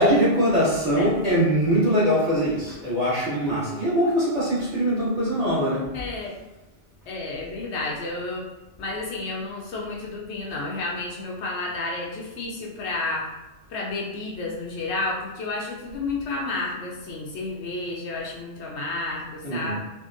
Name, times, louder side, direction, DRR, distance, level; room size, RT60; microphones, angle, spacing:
voice 1, 0.0-5.9 19.4-19.7, equal, 35° right, -12 dB, 1.5 m, -22 dB
voice 2, 5.9-6.4 7.1-8.5 8.8-13.3 13.7-19.7, left 2 dB, 75° left, -2 dB, 0.8 m, -31 dB
3.6 x 2.2 x 2.5 m, 1.0 s
omnidirectional pair, 1.2 m